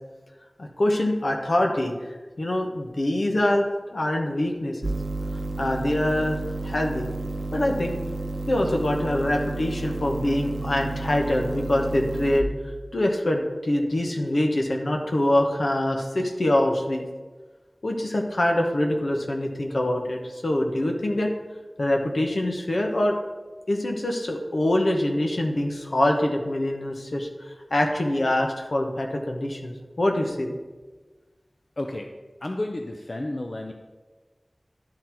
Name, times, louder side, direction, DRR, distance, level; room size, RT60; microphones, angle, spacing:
voice 1, 0.6-1.9 2.4-4.8 5.6-6.4 6.6-7.1 7.5-8.0 8.5-12.5 12.9-17.1 17.8-21.3 21.8-23.1 23.7-30.6, left 1 dB, 80° left, 1 dB, 1.0 m, -24 dB
sound 1, 4.8-12.4, right 2 dB, 60° right, 0.7 m, -31 dB
voice 2, 31.8-32.1 32.4-33.7, left 1 dB, 55° left, 3 dB, 0.5 m, -31 dB
10.5 x 3.9 x 4.4 m, 1.3 s
wide cardioid pair, 55°, 0 cm